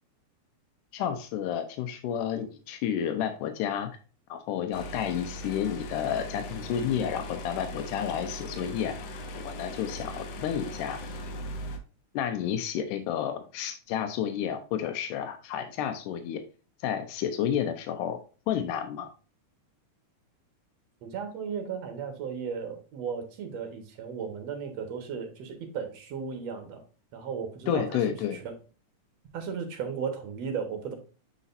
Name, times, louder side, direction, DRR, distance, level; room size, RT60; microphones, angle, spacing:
voice 1, 0.9-3.9 4.3-9.0 9.4-11.0 12.1-16.4 16.8-18.2 18.5-19.1 27.7-28.4, left 9 dB, 90° left, 8 dB, 2.2 m, -31 dB
sound 1, 4.7-11.8, left 1 dB, 65° left, 1.7 m, -39 dB
voice 2, 21.0-26.8 27.1-28.4 29.3-30.9, right 6 dB, 60° right, 5 dB, 2.3 m, -35 dB
8.1 x 5.0 x 2.6 m, 0.35 s
omnidirectional pair, 3.6 m